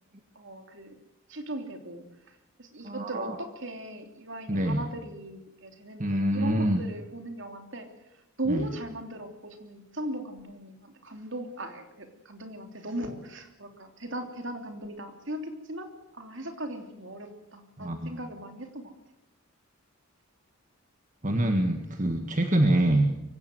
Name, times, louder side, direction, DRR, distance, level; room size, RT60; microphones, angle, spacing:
voice 1, 0.3-1.0 1.3-7.9 8.4-18.9 22.2-22.3, right 1 dB, 55° right, 5 dB, 3.2 m, -38 dB
voice 2, 2.8-3.4 4.5-4.8 6.0-6.8 8.5-8.7 17.8-18.1 21.2-23.1, right 1 dB, 35° right, 5 dB, 1.7 m, -25 dB
23.5 x 17.0 x 8.0 m, 0.89 s
head